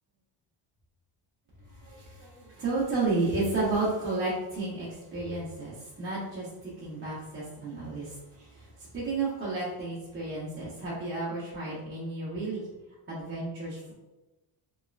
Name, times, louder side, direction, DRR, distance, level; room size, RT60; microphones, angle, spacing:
voice 1, 1.8-6.5 6.8-8.7 8.9-12.7 13.1-13.9, right 3 dB, 25° right, -9 dB, 0.8 m, -32 dB
3.5 x 3.1 x 2.4 m, 1.1 s
cardioid pair, 160°, 49 cm